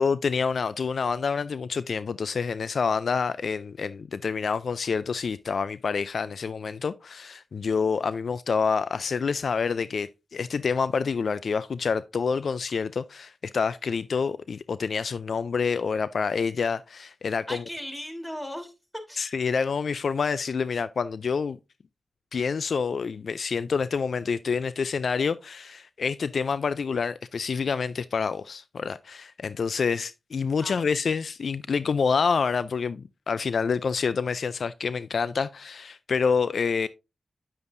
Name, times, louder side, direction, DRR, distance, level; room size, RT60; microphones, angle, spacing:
voice 1, 0.0-17.6 19.2-21.6 22.3-36.9, left 5 dB, 70° left, 0.3 m, -27 dB
voice 2, 17.5-18.7 19.1-19.3 30.6-31.0, equal, 15° left, 3.2 m, -38 dB
9.8 x 7.0 x 2.6 m
cardioid pair, 45°, 0 cm